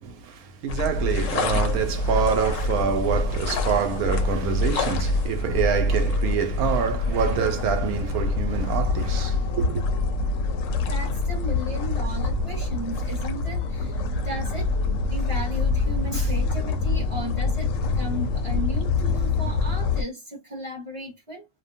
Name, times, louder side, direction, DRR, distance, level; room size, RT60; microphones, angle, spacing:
voice 1, 0.0-9.8, right 7 dB, 70° right, 1.1 m, -26 dB
sound 1, 0.7-20.0, left 3 dB, 65° left, 0.8 m, -25 dB
voice 2, 10.8-14.7 15.1-17.7 17.9-21.5, right 1 dB, 25° right, 0.7 m, -35 dB
2.6 x 2.2 x 2.6 m
omnidirectional pair, 1.7 m